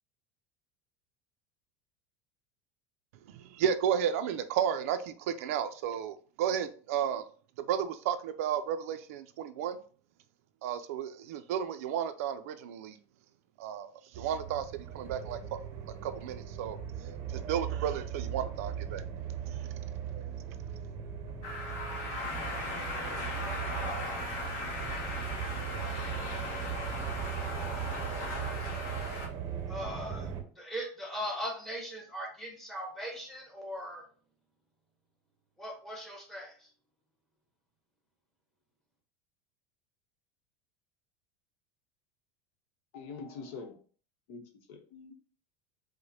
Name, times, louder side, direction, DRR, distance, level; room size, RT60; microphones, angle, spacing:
voice 1, 3.3-7.2 7.7-9.8 10.6-13.0 13.6-15.6 16.0-16.8 17.3-19.0 19.5-19.7, right 9 dB, 85° right, 0.4 m, -33 dB
sound 1, 14.1-30.4, right 9 dB, 40° right, 0.6 m, -39 dB
sound 2, 21.4-29.3, left 2 dB, 50° left, 1.3 m, -38 dB
sound 3, 22.2-28.4, left 2 dB, 20° left, 1.4 m, -48 dB
voice 2, 29.7-30.3 30.6-34.0 35.6-36.5, equal, 5° left, 1.0 m, -39 dB
voice 3, 42.9-43.7 44.3-44.4 44.7-45.1, left 4 dB, 70° left, 0.9 m, -44 dB
4.8 x 2.1 x 2.7 m
supercardioid pair, 145°, 8 cm